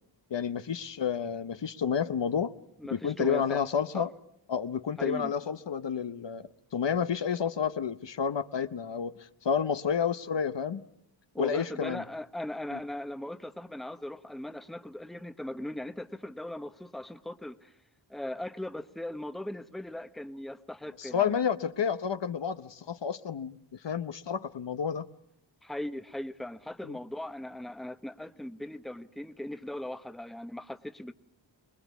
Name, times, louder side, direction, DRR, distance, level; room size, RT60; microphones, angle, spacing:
voice 1, 0.3-2.5 2.9-4.1 4.5-9.1 9.4-10.8 11.4-12.0 12.7-12.8 21.0-23.6 23.8-25.1 26.9-27.0, left 7 dB, 70° left, 1.0 m, -30 dB
voice 2, 2.8-3.6 3.9-4.1 5.0-5.3 11.3-17.7 18.1-21.4 25.6-31.1, left 1 dB, ahead, 1.0 m, -39 dB
24.5 x 21.5 x 8.3 m
wide cardioid pair, 100°, 45 cm